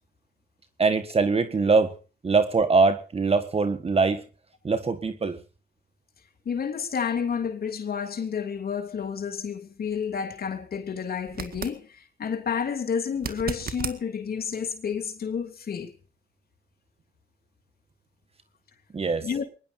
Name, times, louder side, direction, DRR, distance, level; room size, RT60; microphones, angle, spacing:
voice 1, 0.8-2.0 2.2-4.2 4.6-5.4 18.9-19.3, right 4 dB, 30° right, 1.6 m, -22 dB
voice 2, 6.4-15.9 19.2-19.4, left 7 dB, 50° left, 3.2 m, -30 dB
sound 1, 11.3-11.8 13.2-14.0 17.0-17.1, right 7 dB, 50° right, 1.9 m, -34 dB
23.5 x 20.5 x 2.7 m
cardioid pair, 90°, 20 cm